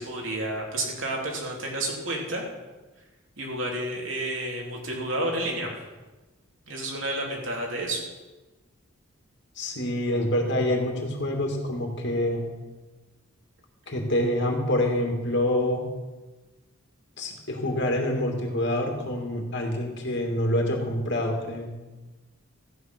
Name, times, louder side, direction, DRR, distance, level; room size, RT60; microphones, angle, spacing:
voice 1, 0.0-2.5 3.4-5.7 6.7-8.0, right 1 dB, 65° right, -1 dB, 3.4 m, -30 dB
voice 2, 9.6-12.4 13.9-15.8 17.2-21.7, left 1 dB, 55° left, 2 dB, 2.6 m, -26 dB
14.0 x 9.6 x 6.1 m, 1.2 s
head